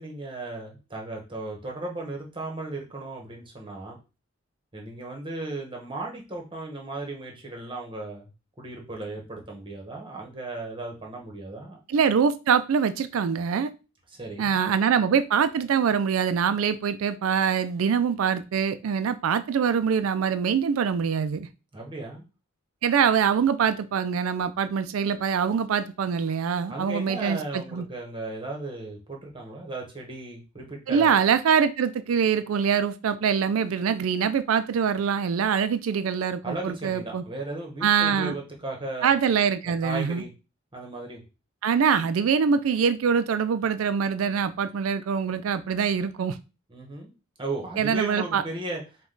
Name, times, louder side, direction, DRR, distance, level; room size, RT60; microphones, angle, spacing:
voice 1, 0.0-4.0 4.7-8.3 8.6-11.8 14.1-14.6 21.7-22.2 26.7-31.1 36.4-39.1 39.8-40.3 40.7-41.2 46.7-47.1 47.4-48.8, right 2 dB, 25° right, 0 dB, 1.1 m, -36 dB
voice 2, 11.9-13.7 14.4-21.5 22.8-27.9 30.9-37.2 37.8-38.3 39.0-40.2 41.6-46.4 47.8-48.4, right 7 dB, 85° right, 13 dB, 0.4 m, -24 dB
5.0 x 2.3 x 3.8 m, 0.30 s
head